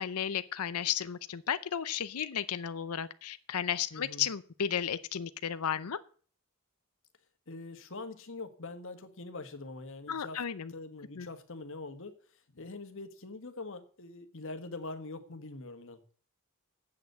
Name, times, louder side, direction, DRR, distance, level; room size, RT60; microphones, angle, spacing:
voice 1, 0.0-6.0 10.1-10.7 11.2-11.3, left 8 dB, 90° left, 14 dB, 0.6 m, -34 dB
voice 2, 3.9-4.3 7.5-10.4 10.7-12.2 12.5-16.0, left 3 dB, 65° left, 8 dB, 1.6 m, -43 dB
8.5 x 8.1 x 7.9 m, 0.43 s
head